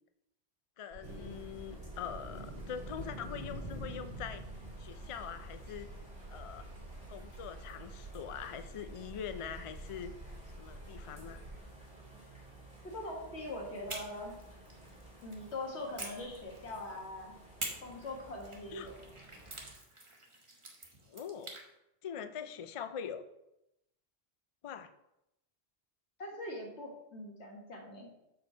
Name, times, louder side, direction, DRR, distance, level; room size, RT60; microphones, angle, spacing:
voice 1, 0.8-4.4 4.8-5.9 6.3-6.7 7.1-11.4 18.7-18.9 21.1-21.5 22.0-23.2 24.6-24.9, left 8 dB, 55° left, 9 dB, 0.3 m, -43 dB
sound 1, 0.9-11.6, right 1 dB, 70° right, 1.7 m, -49 dB
sound 2, 1.0-19.7, right 1 dB, 5° right, 2.6 m, -51 dB
voice 2, 12.8-14.3 15.2-17.4 17.8-18.9 26.2-28.1, left 1 dB, 80° left, 0 dB, 1.9 m, -42 dB
sound 3, 13.9-15.4 16.0-17.0 17.6-21.7, right 2 dB, 30° right, 1.1 m, -46 dB
7.0 x 5.2 x 4.4 m, 0.86 s
omnidirectional pair, 1.1 m